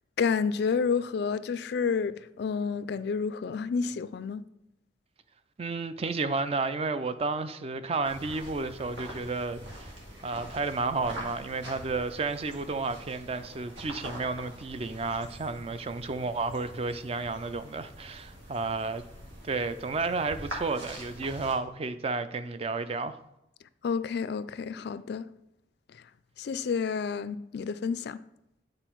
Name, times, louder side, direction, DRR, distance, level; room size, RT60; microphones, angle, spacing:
voice 1, 0.2-4.4 23.8-25.3 26.4-28.2, left 5 dB, 60° left, 0.3 m, -30 dB
voice 2, 5.6-9.9 10.2-19.0 19.4-23.2, right 3 dB, 30° right, 0.4 m, -32 dB
sound 1, 8.0-21.5, equal, 85° right, 2.1 m, -44 dB
9.0 x 4.2 x 4.5 m
head